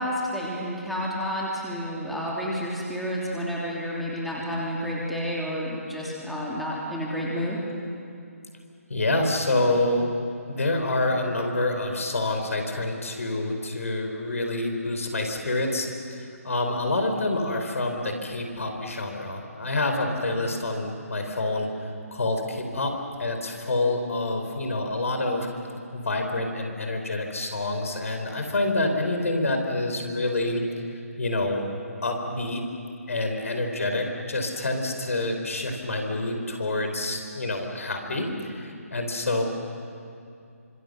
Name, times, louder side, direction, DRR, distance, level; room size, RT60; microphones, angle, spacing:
voice 1, 0.0-7.6, equal, ahead, -6 dB, 3.3 m, -30 dB
voice 2, 8.9-10.1 10.5-15.9 16.4-21.7 22.1-25.5 25.9-30.6 30.9-31.6 32.0-32.7 33.1-39.4, left 2 dB, 65° left, 4 dB, 4.6 m, -27 dB
28.5 x 26.0 x 6.8 m, 2.5 s
figure-of-eight pair, 145°, 8 cm